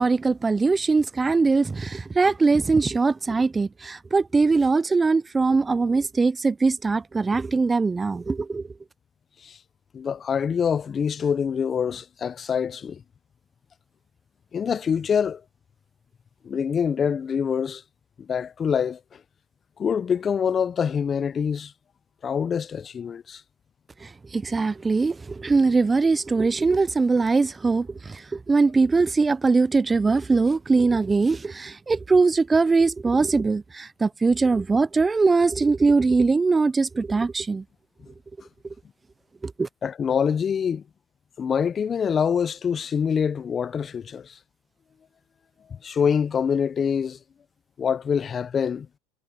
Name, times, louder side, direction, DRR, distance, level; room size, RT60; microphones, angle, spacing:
voice 1, 0.0-8.7 24.0-37.6 39.4-39.7, right 4 dB, 15° right, 0.4 m, -21 dB
voice 2, 9.9-13.0 14.5-15.4 16.4-17.8 18.2-19.0 19.8-21.7 22.2-23.4 39.8-40.8 41.4-44.4 45.7-47.2 47.8-48.9, left 7 dB, 30° left, 0.6 m, -25 dB
hypercardioid pair, 100°, 0 cm